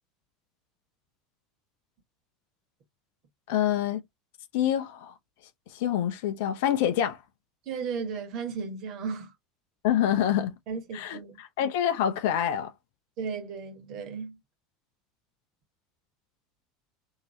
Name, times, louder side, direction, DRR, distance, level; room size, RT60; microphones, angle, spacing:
voice 1, 3.5-4.0 4.5-5.1 5.7-7.2 9.8-10.5 10.9-11.2 11.6-12.7, left 10 dB, 60° left, 0.7 m, -26 dB
voice 2, 7.6-9.3 10.7-11.4 13.2-14.4, right 5 dB, 50° right, 1.2 m, -35 dB
2.8 x 2.8 x 3.1 m
figure-of-eight pair, 75°, 0 cm